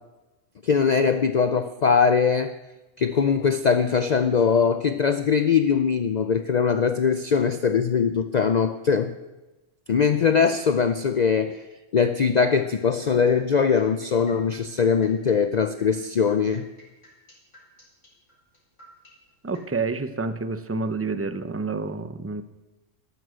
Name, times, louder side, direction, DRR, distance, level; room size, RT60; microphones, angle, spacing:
voice 1, 0.6-2.5 3.0-9.1 9.9-11.6 11.9-16.7, left 6 dB, 50° left, 9 dB, 0.5 m, -21 dB
sound 1, 12.5-19.7, left 1 dB, 70° left, 4.4 m, -51 dB
voice 2, 19.4-22.4, right 4 dB, 20° right, 11 dB, 0.3 m, -28 dB
12.5 x 11.5 x 6.4 m, 1.1 s
omnidirectional pair, 1.3 m